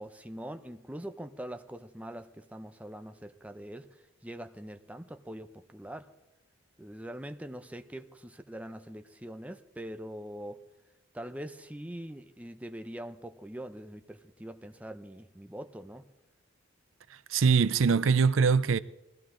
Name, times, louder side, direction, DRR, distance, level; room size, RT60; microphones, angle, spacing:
voice 1, 0.0-3.9 4.2-6.1 6.8-10.6 11.1-16.0, right 1 dB, 5° right, 0.6 m, -43 dB
voice 2, 17.1-18.8, right 5 dB, 80° right, 0.5 m, -23 dB
20.5 x 15.0 x 3.8 m
head